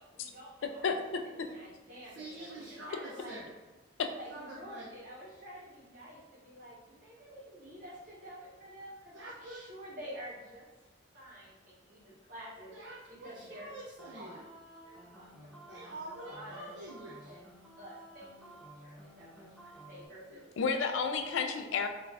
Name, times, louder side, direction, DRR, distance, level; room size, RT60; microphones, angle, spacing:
voice 1, 0.0-0.8 1.1-3.4 4.1-10.7 11.1-12.7 13.1-13.7 14.1-14.4 14.8-15.8 16.2-17.0 17.3-17.4 17.8-20.4, equal, 45° right, -7 dB, 1.0 m, -49 dB
voice 2, 2.1-3.5 4.3-4.9 9.1-9.7 12.7-14.5 15.7-17.4 20.3-20.5, right 2 dB, 65° right, -6 dB, 0.4 m, -46 dB
sound 1, 14.0-20.1, right 1 dB, ahead, 0.3 m, -53 dB
voice 3, 20.6-21.9, left 5 dB, 80° left, 5 dB, 0.3 m, -31 dB
2.4 x 2.3 x 3.2 m, 1.2 s
head